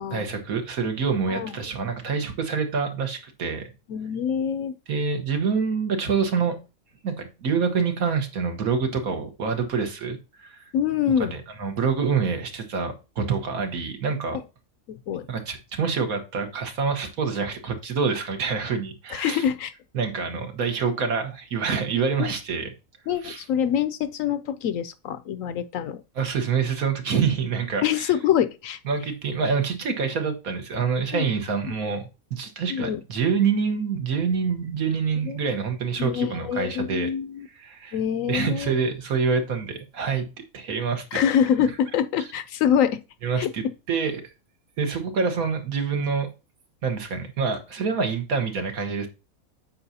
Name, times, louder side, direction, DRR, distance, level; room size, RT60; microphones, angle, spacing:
voice 1, 0.1-3.7 4.9-6.6 7.0-10.6 11.2-14.4 15.3-19.4 19.9-22.7 23.2-23.4 26.1-28.1 28.8-37.1 37.5-38.0 38.3-40.2 40.5-41.2 43.2-43.6 43.9-44.2 44.8-46.3 46.8-49.1, right 5 dB, 75° right, 1.7 m, -26 dB
voice 2, 3.9-4.7 10.7-11.3 14.9-15.3 19.1-19.7 22.2-22.3 23.1-26.0 27.8-28.8 31.1-31.2 31.7-31.8 32.7-33.0 35.2-35.4 36.0-37.5 37.9-38.8 41.1-43.0 43.4-43.5, left 9 dB, 70° left, 0.9 m, -25 dB
8.7 x 5.7 x 2.7 m
omnidirectional pair, 1.5 m